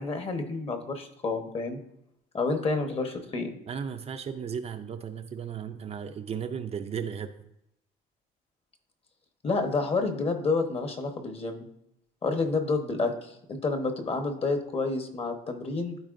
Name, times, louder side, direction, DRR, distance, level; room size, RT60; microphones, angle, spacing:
voice 1, 0.0-1.8 2.3-3.5 9.4-11.7 12.2-16.0, left 3 dB, 35° left, 6 dB, 1.2 m, -29 dB
voice 2, 3.7-7.3, right 7 dB, 40° right, 7 dB, 0.5 m, -35 dB
12.5 x 4.4 x 2.6 m, 0.79 s
cardioid pair, 110°, 17 cm